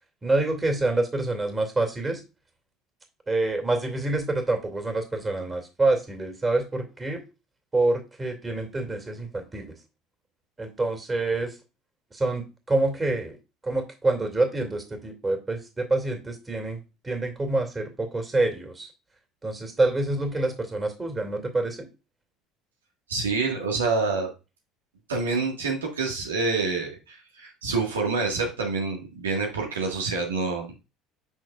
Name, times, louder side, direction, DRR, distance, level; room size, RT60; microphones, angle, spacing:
voice 1, 0.2-2.2 3.3-7.2 7.7-9.7 10.6-11.6 12.1-13.4 13.6-16.8 17.0-18.9 19.4-21.9, right 2 dB, 20° right, 6 dB, 2.3 m, -26 dB
voice 2, 23.1-24.3 25.1-30.8, right 4 dB, 85° right, 0 dB, 1.5 m, -27 dB
8.0 x 5.8 x 2.4 m, 0.28 s
hypercardioid pair, 65°, 0 cm